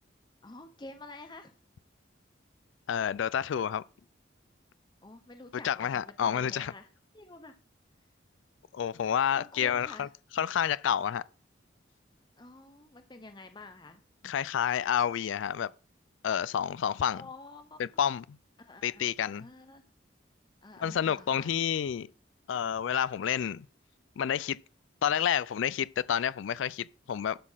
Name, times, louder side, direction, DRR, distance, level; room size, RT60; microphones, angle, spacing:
voice 1, 0.4-1.5 5.0-6.9 7.1-7.6 9.3-10.1 12.4-14.0 17.1-17.8 18.6-19.1 19.3-19.8 20.6-21.6, left 2 dB, 25° left, 0.8 m, -49 dB
voice 2, 2.9-3.8 5.6-6.7 8.7-10.1 10.3-11.2 14.2-15.7 16.2-17.2 17.8-18.4 18.8-19.4 20.8-22.1 22.5-23.7 24.2-24.6 25.0-27.4, left 8 dB, 80° left, 0.3 m, -29 dB
12.0 x 4.2 x 5.7 m
head